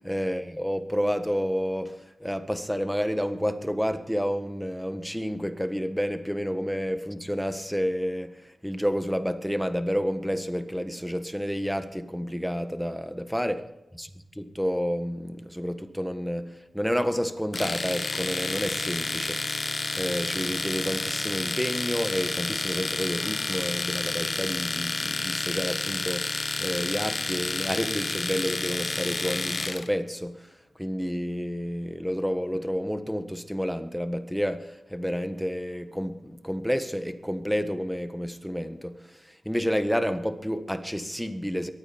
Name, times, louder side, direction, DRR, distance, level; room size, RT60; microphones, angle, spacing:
voice 1, 0.0-13.6 14.0-14.1 14.3-30.5 30.8-41.7, equal, ahead, 1.4 m, -30 dB
Domestic sounds home sounds, 17.5-29.9, left 3 dB, 45° left, 1.0 m, -30 dB
23.5 x 9.1 x 4.3 m
cardioid pair, 50°, 0 cm